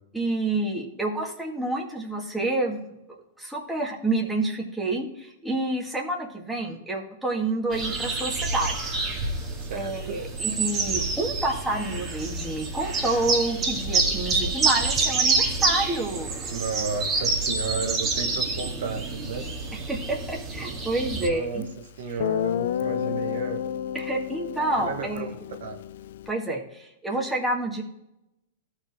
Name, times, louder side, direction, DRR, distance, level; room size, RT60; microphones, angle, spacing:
voice 1, 0.1-2.9 3.4-9.0 9.7-16.5 19.7-21.7 23.9-25.4 26.3-27.8, right 2 dB, ahead, -3 dB, 2.0 m, -29 dB
sound 1, 7.7-21.3, right 3 dB, 25° right, 2.0 m, -27 dB
voice 2, 9.6-10.2 16.5-19.5 21.1-21.6 22.0-23.6 24.8-25.8, right 4 dB, 70° right, 4 dB, 1.2 m, -33 dB
Guitar, 21.6-21.7 22.2-26.3, left 10 dB, 65° left, 0.3 m, -30 dB
14.0 x 4.9 x 3.6 m, 0.89 s
hypercardioid pair, 115°, 0 cm